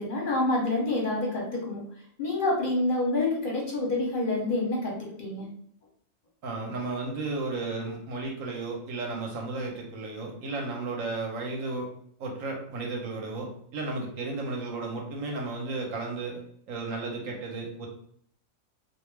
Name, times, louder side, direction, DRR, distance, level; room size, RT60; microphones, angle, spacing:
voice 1, 0.0-1.8 2.2-4.9 5.2-5.5, left 2 dB, 45° left, -3 dB, 0.7 m, -27 dB
voice 2, 6.4-11.9 12.2-16.4 16.7-17.9, right 3 dB, 70° right, 1 dB, 1.0 m, -34 dB
2.4 x 2.2 x 3.0 m, 0.64 s
omnidirectional pair, 1.5 m